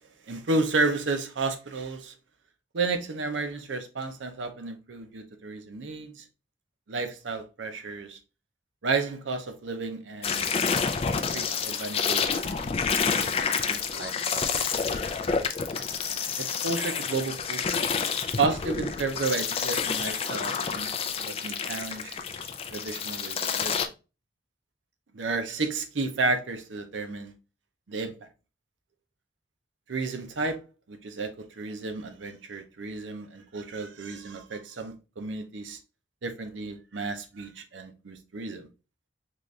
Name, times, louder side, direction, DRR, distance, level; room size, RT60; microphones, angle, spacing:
voice 1, 0.3-2.1 2.7-6.2 6.9-8.2 8.8-10.5 11.1-13.3 13.6-15.0 16.4-17.9 18.4-22.2 22.7-23.8 25.1-27.3 27.9-28.3 29.9-30.6 30.9-35.8 36.2-38.7, right 3 dB, 80° right, 0.6 m, -32 dB
sound 1, 10.2-23.9, left 6 dB, 30° left, 0.4 m, -29 dB
3.9 x 2.5 x 3.1 m
head